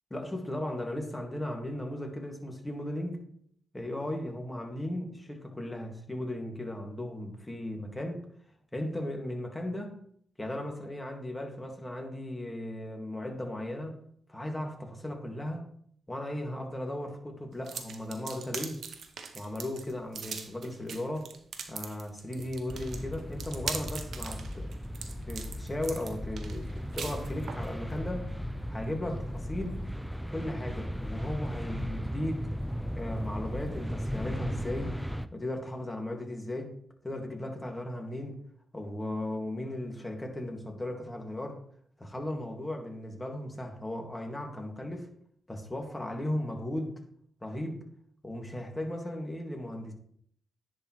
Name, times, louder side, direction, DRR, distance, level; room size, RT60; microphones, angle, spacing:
voice 1, 0.1-3.2 3.7-8.2 8.7-9.9 10.4-14.0 14.3-15.6 16.1-18.8 19.3-21.3 21.7-24.8 25.1-28.3 28.7-29.8 30.3-32.5 33.0-35.0 35.3-36.7 37.0-38.4 38.7-41.6 42.0-45.1 45.5-46.9 47.4-47.8 48.2-49.9, left 1 dB, 20° left, 2 dB, 2.0 m, -36 dB
sound 1, 17.6-27.7, right 6 dB, 75° right, 0.8 m, -41 dB
sound 2, 22.7-35.3, equal, ahead, 0.4 m, -36 dB
10.0 x 4.4 x 3.1 m, 0.64 s
cardioid pair, 55°, 0 cm